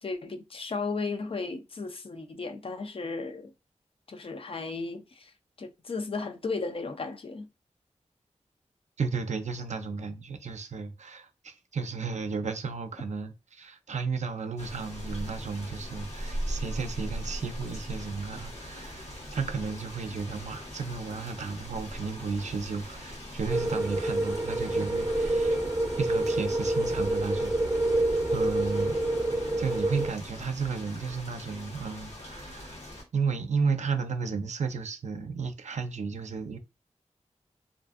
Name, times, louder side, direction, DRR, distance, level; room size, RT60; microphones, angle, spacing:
voice 1, 0.0-3.5 4.1-5.3 5.6-7.5, left 3 dB, 50° left, 0.4 m, -35 dB
voice 2, 9.0-25.6 26.0-27.5 28.3-29.0 29.6-32.8 33.1-36.6, right 5 dB, 75° right, 0.4 m, -33 dB
sound 1, 14.6-33.0, equal, 70° left, 1.0 m, -40 dB
sound 2, 23.5-30.1, right 1 dB, 25° right, 0.5 m, -27 dB
2.5 x 2.4 x 2.4 m
wide cardioid pair, 70°, 12 cm